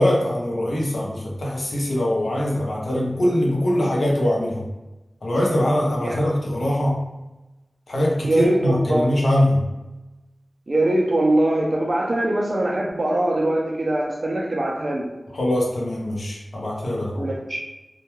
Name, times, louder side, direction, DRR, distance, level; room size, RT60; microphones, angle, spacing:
voice 1, 0.0-4.6 5.2-7.0 7.9-9.6 15.3-17.3, left 1 dB, 85° left, -3 dB, 0.6 m, -22 dB
voice 2, 8.2-9.1 10.7-15.1 17.1-17.6, right 1 dB, 50° right, -1 dB, 0.3 m, -22 dB
2.2 x 2.1 x 2.9 m, 1.0 s
wide cardioid pair, 75°, 0 cm